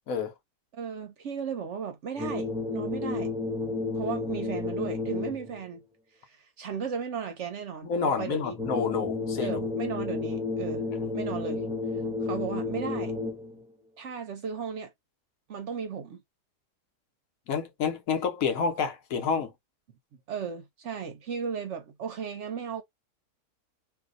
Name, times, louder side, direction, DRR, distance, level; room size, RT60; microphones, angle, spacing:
voice 1, 0.7-3.3 3.9-5.8 6.2-8.6 9.4-10.9 11.1-11.7 12.2-13.1 14.0-14.9 15.5-16.2 20.3-22.8, right 6 dB, 60° right, 0.8 m, -35 dB
sound 1, 2.2-5.6 8.6-13.6, left 3 dB, 10° right, 0.4 m, -31 dB
voice 2, 7.8-9.7 17.5-19.5, left 6 dB, 70° left, 1.1 m, -29 dB
2.6 x 2.6 x 3.6 m
omnidirectional pair, 1.6 m